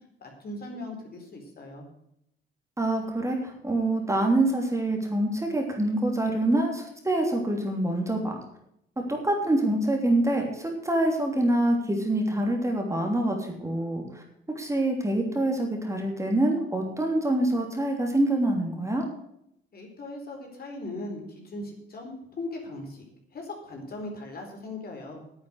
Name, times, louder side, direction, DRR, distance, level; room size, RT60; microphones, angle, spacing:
voice 1, 0.2-1.8 19.7-23.1 23.3-25.2, left 2 dB, 50° left, 1 dB, 4.2 m, -39 dB
voice 2, 2.8-8.4 9.0-14.2 14.5-19.0, right 1 dB, 15° right, 1 dB, 3.0 m, -26 dB
9.7 x 8.4 x 8.0 m, 0.77 s
cardioid pair, 90°, 20 cm